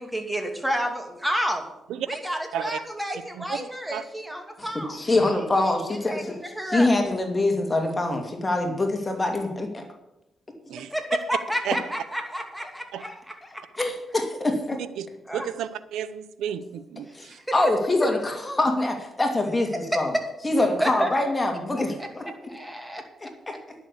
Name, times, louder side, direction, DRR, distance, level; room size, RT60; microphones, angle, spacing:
voice 1, 0.0-1.6 2.1-5.0 5.9-6.9 10.9-13.4 15.3-15.5 17.3-17.4 20.8-21.1 21.7-23.0, equal, 5° right, 4 dB, 2.6 m, -30 dB
voice 2, 4.6-6.4 6.7-9.9 13.0-13.1 13.8-14.8 17.1-20.1 20.4-22.2 23.5-23.6, left 2 dB, 25° left, 4 dB, 2.5 m, -24 dB
voice 3, 15.3-17.4, right 9 dB, 85° right, 14 dB, 0.7 m, -32 dB
10.5 x 6.8 x 8.3 m, 0.89 s
cardioid pair, 65°, 0 cm